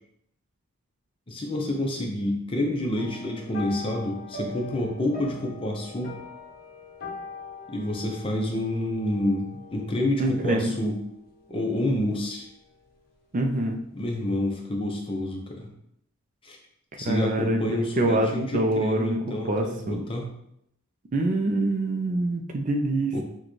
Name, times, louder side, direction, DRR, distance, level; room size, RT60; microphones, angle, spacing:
voice 1, 1.3-6.2 7.7-11.0 11.5-12.5 13.9-15.7 16.4-16.6 17.0-20.3 23.1-23.2, left 1 dB, 25° left, 1 dB, 0.6 m, -28 dB
sound 1, 2.9-12.5 12.8-13.2 13.5-13.6, left 3 dB, 45° left, 0.9 m, -43 dB
voice 2, 10.2-10.7 13.3-13.8 17.0-20.0 21.1-23.2, right 1 dB, 40° right, 3 dB, 0.4 m, -25 dB
6.1 x 2.2 x 3.1 m, 0.75 s
head